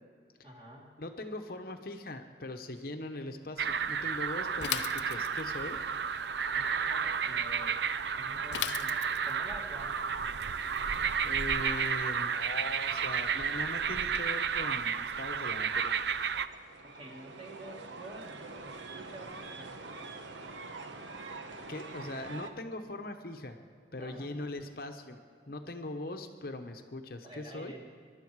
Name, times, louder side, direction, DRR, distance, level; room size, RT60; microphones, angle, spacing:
voice 1, 0.4-1.0 6.5-7.8 8.2-10.0 16.8-19.8 24.0-24.4 27.2-27.8, right 1 dB, 30° right, -2 dB, 2.5 m, -48 dB
voice 2, 1.0-5.8 11.2-15.9 21.7-23.6 23.9-25.2 25.5-27.7, left 2 dB, 55° left, 6 dB, 1.0 m, -40 dB
sound 1, 3.6-16.5, right 6 dB, 70° right, 0.5 m, -32 dB
Bicycle / Mechanisms, 4.6-5.6 8.5-9.4, left 10 dB, 75° left, 0.6 m, -36 dB
sound 2, 15.7-22.5, right 3 dB, 85° right, 1.1 m, -45 dB
22.5 x 11.5 x 4.8 m, 2.2 s
head